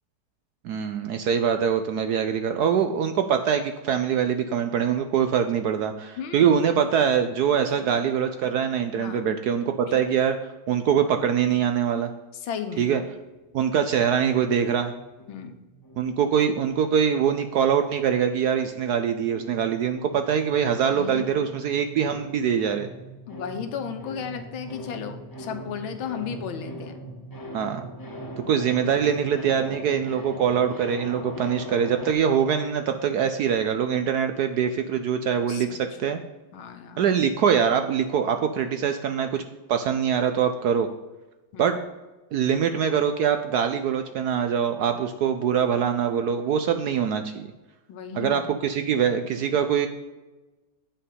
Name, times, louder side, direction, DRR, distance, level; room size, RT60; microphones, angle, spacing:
voice 1, 0.6-10.4 10.7-12.1 12.8-13.0 13.5-14.9 16.0-22.9 27.5-27.8 28.4-36.2 37.0-39.4 39.7-40.9 41.6-41.8 42.3-47.5 48.1-49.9, right 8 dB, 70° right, 7 dB, 1.0 m, -23 dB
voice 2, 6.2-6.5 7.8-7.9 9.0-9.2 9.9-10.0 12.4-12.9 15.3-15.6 20.9-21.3 23.3-27.0 35.5-35.8 36.5-37.1 41.5-41.7 47.9-48.5, left 7 dB, 85° left, 7 dB, 1.7 m, -35 dB
sound 1, 14.9-17.0 17.3-32.1, equal, 30° left, 0.3 m, -41 dB
8.9 x 4.5 x 7.4 m, 1.1 s
omnidirectional pair, 2.2 m